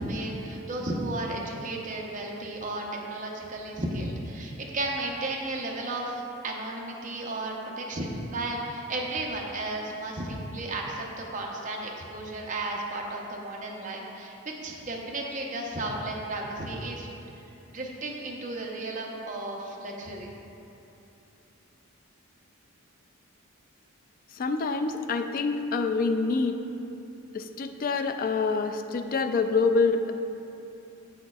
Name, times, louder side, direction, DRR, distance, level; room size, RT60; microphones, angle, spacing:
voice 1, 0.0-17.1 17.7-20.3, right 2 dB, 35° right, -1 dB, 0.7 m, -34 dB
voice 2, 24.3-26.6 27.3-30.1, left 4 dB, 40° left, 7 dB, 0.3 m, -26 dB
8.1 x 6.4 x 2.3 m, 2.9 s
head